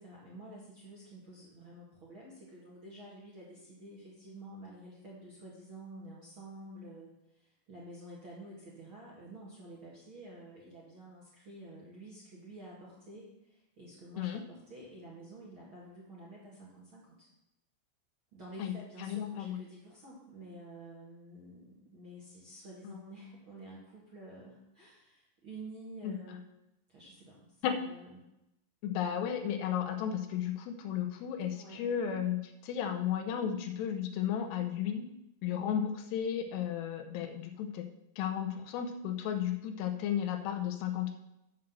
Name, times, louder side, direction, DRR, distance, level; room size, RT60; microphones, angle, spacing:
voice 1, 0.0-17.3 18.3-26.4 26.9-28.2 31.5-31.9, right 1 dB, 45° right, -5 dB, 1.7 m, -50 dB
voice 2, 19.0-19.6 22.8-23.0 26.0-26.2 27.6-27.8 28.8-35.1 35.4-37.9 38.2-41.2, left 9 dB, 85° left, 6 dB, 2.7 m, -34 dB
7.5 x 6.1 x 7.4 m, 0.87 s
omnidirectional pair, 5.0 m